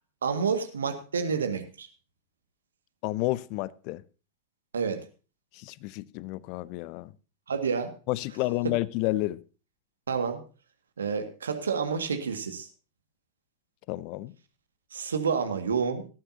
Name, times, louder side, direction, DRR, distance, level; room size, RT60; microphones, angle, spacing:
voice 1, 0.2-1.9 4.7-5.1 7.5-7.9 8.6-8.7 10.1-10.4 11.0-12.7 14.9-16.1, right 6 dB, 70° right, 1.8 m, -29 dB
voice 2, 3.0-4.0 5.5-7.1 8.1-9.4 13.9-14.3, left 19 dB, 45° left, 0.6 m, -30 dB
17.5 x 13.5 x 2.8 m
figure-of-eight pair, 90°, 0 cm